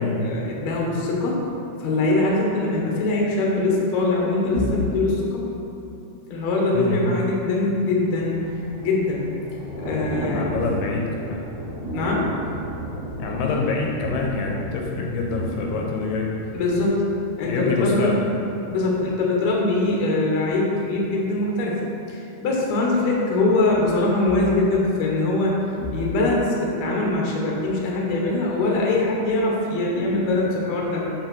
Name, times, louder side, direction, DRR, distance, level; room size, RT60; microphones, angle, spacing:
voice 1, 0.0-1.4 1.8-5.4 6.3-8.5 8.8-9.3 9.8-10.5 11.9-12.3 16.5-17.1 17.4-18.2 18.7-21.8 22.1-31.1, left 2 dB, 60° left, -2 dB, 1.9 m, -22 dB
Thunder / Rain, 7.9-17.9 18.2-18.5, right 1 dB, 60° right, 2.3 m, -34 dB
voice 2, 10.3-11.4 13.2-16.3 17.4-18.3, left 3 dB, 80° left, -1 dB, 2.7 m, -26 dB
6.6 x 5.5 x 6.2 m, 2.9 s
omnidirectional pair, 4.7 m